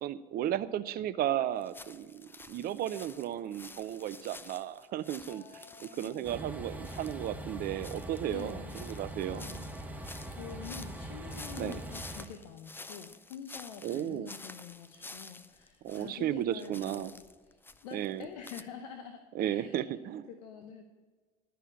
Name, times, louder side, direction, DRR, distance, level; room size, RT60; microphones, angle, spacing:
voice 1, 0.0-5.4 5.8-9.4 11.6-11.8 13.8-14.3 15.8-17.1 17.9-18.3 19.3-20.3, right 11 dB, 45° right, 15 dB, 0.6 m, -34 dB
sound 1, 1.6-6.4 6.8-16.2 16.4-18.6, left 3 dB, 10° left, 0.5 m, -50 dB
voice 2, 5.3-6.4 8.2-8.8 9.3-9.7 10.3-19.8 20.3-20.8, left 7 dB, 70° left, 6 dB, 0.9 m, -47 dB
Train, 6.2-12.3, right 1 dB, 5° right, 1.1 m, -42 dB
12.0 x 5.6 x 7.4 m, 1.4 s
hypercardioid pair, 65°, 21 cm